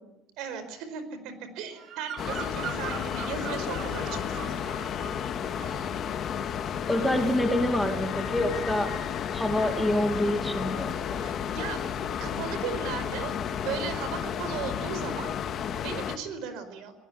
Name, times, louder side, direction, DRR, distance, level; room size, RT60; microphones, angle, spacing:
voice 1, 0.4-4.9 11.2-11.9 12.2-13.3 13.6-15.3 15.6-16.9, right 6 dB, 70° right, 11 dB, 4.8 m, -37 dB
Bird vocalization bird call bird song, 1.7-5.3 5.5-5.9, right 8 dB, 50° right, 3.9 m, -41 dB
sound 1, 2.2-16.2, left 8 dB, 35° left, 2.0 m, -32 dB
voice 2, 6.9-8.9 9.3-10.9, left 1 dB, 5° left, 5 dB, 2.4 m, -26 dB
24.5 x 18.5 x 10.0 m, 0.91 s
cardioid pair, 165°, 0 cm